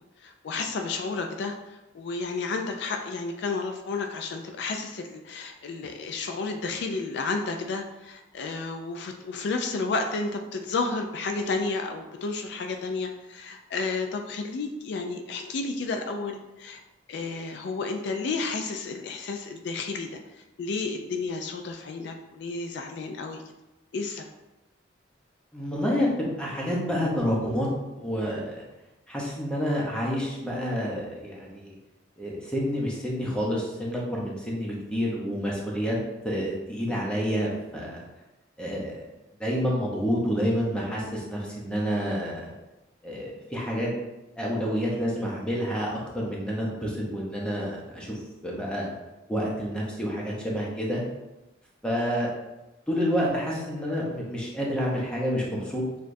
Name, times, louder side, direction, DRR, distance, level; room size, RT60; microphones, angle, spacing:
voice 1, 0.2-16.8 17.1-20.2 20.6-23.4 23.9-24.3, left 3 dB, 60° left, 4 dB, 0.3 m, -31 dB
voice 2, 25.5-27.7 28.0-28.6 29.1-31.7 32.2-36.0 36.2-38.0 38.6-39.0 39.4-42.5 43.0-43.9 44.4-48.9 49.3-51.0 51.8-52.3 52.9-55.8, equal, 5° left, -4 dB, 0.8 m, -29 dB
6.4 x 2.4 x 2.6 m, 1.0 s
head